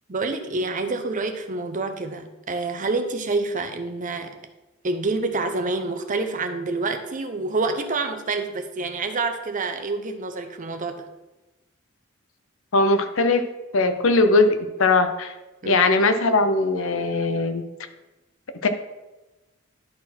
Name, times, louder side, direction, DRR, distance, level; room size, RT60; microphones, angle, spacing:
voice 1, 0.1-4.4 4.8-11.0 15.6-15.9, right 3 dB, 40° right, 6 dB, 0.8 m, -27 dB
voice 2, 12.7-13.4 13.7-15.3 15.7-17.6 18.6-18.7, left 3 dB, 75° left, 9 dB, 0.8 m, -20 dB
11.0 x 4.2 x 4.3 m, 1.1 s
head